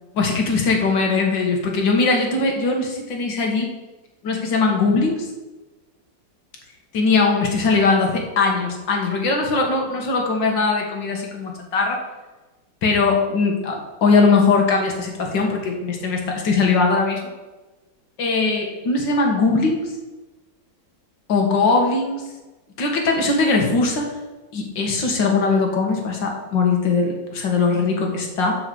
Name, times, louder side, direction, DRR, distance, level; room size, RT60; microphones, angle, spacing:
voice 1, 0.1-3.7 4.2-5.3 6.9-12.0 12.8-17.2 18.2-19.8 21.3-22.2 22.8-24.1 24.5-28.6, left 4 dB, 75° left, 2 dB, 2.3 m, -20 dB
9.6 x 4.9 x 7.8 m, 1.2 s
omnidirectional pair, 2.0 m